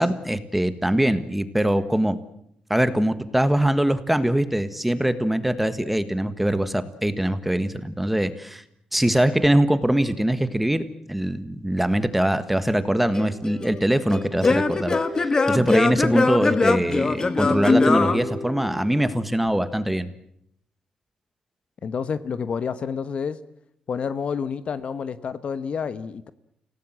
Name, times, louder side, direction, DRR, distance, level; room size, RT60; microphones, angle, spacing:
voice 1, 0.0-2.2 2.7-8.6 8.9-10.8 11.1-20.1, right 1 dB, 5° right, 11 dB, 1.6 m, -22 dB
Singing / Plucked string instrument, 13.2-19.0, left 3 dB, 30° left, 1.5 m, -22 dB
voice 2, 21.8-23.4 23.9-26.3, left 6 dB, 50° left, 13 dB, 1.1 m, -29 dB
28.5 x 17.5 x 7.5 m, 0.73 s
cardioid pair, 115°, 3 cm